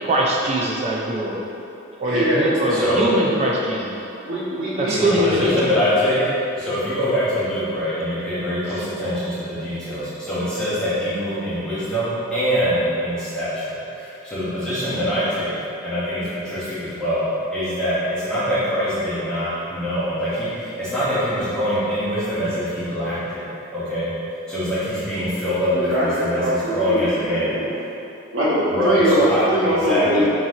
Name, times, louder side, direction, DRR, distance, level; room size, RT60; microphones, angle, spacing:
voice 1, 0.0-1.4 2.0-3.9 4.8-5.5 8.7-8.8, right 1 dB, 30° right, -3 dB, 0.3 m, -22 dB
voice 2, 2.0-2.8 4.2-5.6 25.7-27.7 28.3-30.3, equal, 75° right, -11 dB, 1.1 m, -22 dB
voice 3, 2.7-3.1 4.9-6.2 6.6-15.6 15.8-23.4 23.7-24.1 24.5-27.6 28.7-30.3, equal, 5° left, -13 dB, 1.1 m, -24 dB
3.9 x 2.8 x 3.7 m, 2.8 s
head